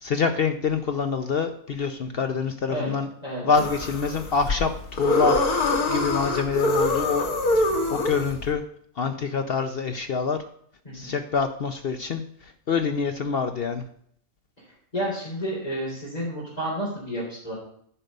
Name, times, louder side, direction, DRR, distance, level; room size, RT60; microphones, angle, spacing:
voice 1, 0.0-3.1 3.4-5.4 5.9-7.2 7.5-8.6 9.0-10.4 10.9-12.2 12.7-13.8, left 5 dB, 55° left, 7 dB, 0.7 m, -26 dB
voice 2, 3.2-3.6 10.8-11.1 14.9-17.5, right 1 dB, 25° left, -9 dB, 3.7 m, -31 dB
sound 1, 3.5-8.5, left 2 dB, 85° left, 1.9 m, -24 dB
10.0 x 5.2 x 6.6 m, 0.65 s
omnidirectional pair, 1.6 m